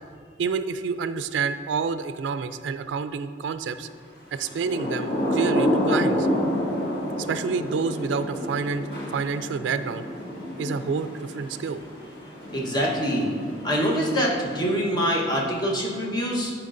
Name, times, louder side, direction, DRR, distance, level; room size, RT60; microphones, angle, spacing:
voice 1, 0.4-3.9 4.3-6.3 7.3-8.9 9.1-10.0 10.6-11.8, right 5 dB, 80° right, 11 dB, 0.3 m, -28 dB
Thunder / Rain, 4.4-15.0, equal, 60° left, 1.5 m, -29 dB
voice 2, 12.5-13.3 13.6-16.5, equal, 25° left, -3 dB, 1.1 m, -24 dB
11.5 x 4.5 x 2.6 m, 2.1 s
head